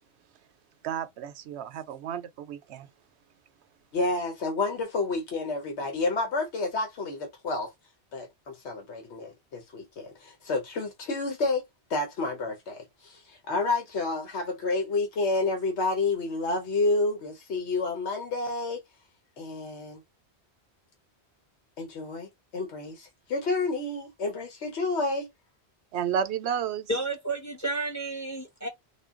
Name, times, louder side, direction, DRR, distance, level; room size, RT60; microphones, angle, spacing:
voice 1, 0.8-2.9 25.9-26.9, right 8 dB, 80° right, 0.9 m, -32 dB
voice 2, 3.9-7.7 8.1-11.6 11.9-18.8 19.4-20.0 21.8-25.3, left 3 dB, 85° left, 1.2 m, -30 dB
voice 3, 26.9-28.7, right 2 dB, 15° left, 0.9 m, -31 dB
3.7 x 2.2 x 3.6 m
omnidirectional pair, 1.1 m